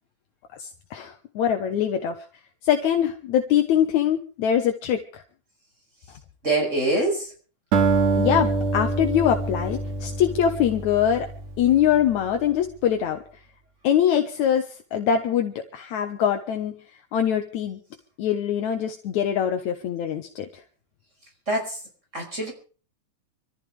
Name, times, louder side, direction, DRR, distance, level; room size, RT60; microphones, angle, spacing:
voice 1, 0.6-2.3 2.6-5.2 8.1-11.3 11.6-13.2 13.8-16.8 17.1-17.8 18.2-20.6, left 9 dB, 75° left, 5 dB, 2.5 m, -23 dB
voice 2, 6.4-7.3 21.5-21.8 22.1-22.5, right 2 dB, 20° right, 1 dB, 5.7 m, -24 dB
Acoustic guitar, 7.7-12.2, right 3 dB, 60° right, 3.1 m, -25 dB
25.0 x 14.5 x 3.5 m, 0.39 s
omnidirectional pair, 3.5 m